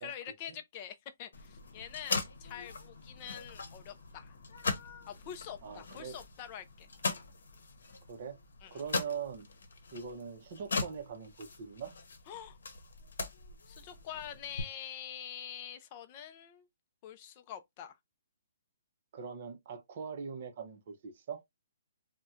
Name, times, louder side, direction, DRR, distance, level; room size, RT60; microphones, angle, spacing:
voice 1, 0.0-4.4 5.1-7.1 8.6-8.8 12.3-12.6 13.7-16.7 17.0-18.0, left 9 dB, 20° left, 0.4 m, -45 dB
sound 1, 1.3-14.6, left 4 dB, 80° left, 0.8 m, -40 dB
voice 2, 5.6-6.2 8.1-8.4 8.7-9.5 9.9-11.9 19.1-21.4, right 6 dB, 35° right, 0.6 m, -42 dB
4.2 x 2.1 x 2.4 m
hypercardioid pair, 175°, 0 cm